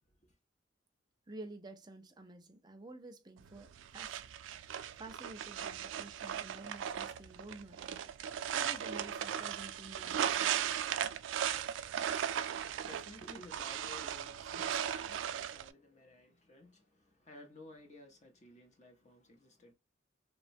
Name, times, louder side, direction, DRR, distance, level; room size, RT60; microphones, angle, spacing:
voice 1, 0.0-0.4 12.7-19.7, left 1 dB, 40° left, 0.7 m, -56 dB
voice 2, 1.3-4.2 5.0-8.1 8.5-10.5, right 2 dB, 20° right, 0.5 m, -51 dB
sound 1, 3.4-15.7, right 9 dB, 85° right, 0.3 m, -37 dB
3.0 x 2.2 x 2.5 m
head